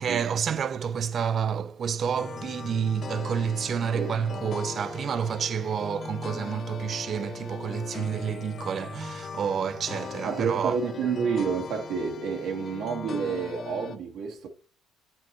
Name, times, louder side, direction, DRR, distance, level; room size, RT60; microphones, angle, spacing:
voice 1, 0.0-10.8, right 7 dB, 40° right, 0.4 m, -29 dB
sound 1, 2.2-14.0, left 6 dB, 35° left, 0.3 m, -39 dB
voice 2, 3.9-4.5 10.2-14.5, right 6 dB, 65° right, 1.5 m, -30 dB
9.5 x 4.3 x 3.0 m
cardioid pair, 140°, 0 cm